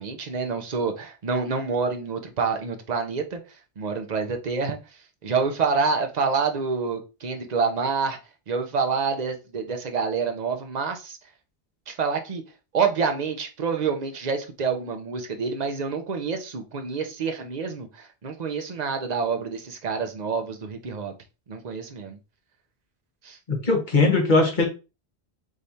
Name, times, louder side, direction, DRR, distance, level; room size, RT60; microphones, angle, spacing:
voice 1, 0.0-3.4 3.8-4.8 5.2-8.2 8.5-11.2 11.9-12.4 12.7-21.1 21.5-22.2 23.2-23.4, right 5 dB, 45° right, 0.8 m, -27 dB
voice 2, 23.5-24.7, left 3 dB, 45° left, 1.5 m, -20 dB
4.9 x 3.3 x 2.8 m
omnidirectional pair, 1.1 m